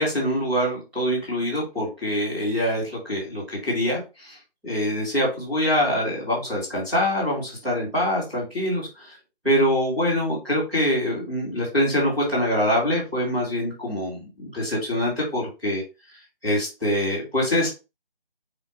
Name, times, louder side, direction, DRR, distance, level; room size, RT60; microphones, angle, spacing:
voice 1, 0.0-4.4 4.6-9.1 9.4-15.8 16.4-17.7, equal, ahead, -12 dB, 1.1 m, -24 dB
4.9 x 2.4 x 4.3 m, 0.28 s
figure-of-eight pair, 160°, 30 cm